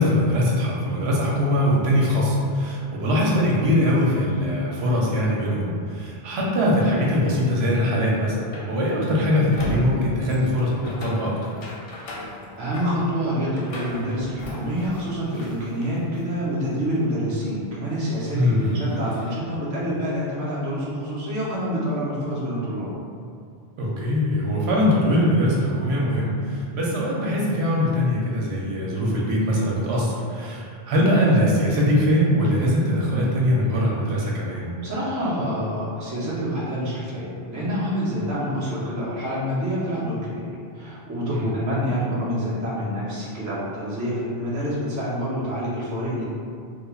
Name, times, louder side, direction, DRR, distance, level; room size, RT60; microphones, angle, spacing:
voice 1, 0.0-11.3 18.3-18.7 23.8-34.7 41.3-41.5, left 1 dB, 80° right, -4 dB, 0.8 m, -22 dB
sound 1, 7.5-16.2 16.6-19.3, left 1 dB, 70° left, 0.7 m, -38 dB
voice 2, 12.6-22.9 34.8-46.3, equal, 25° right, -8 dB, 0.5 m, -27 dB
3.2 x 2.1 x 2.3 m, 2.3 s
omnidirectional pair, 1.1 m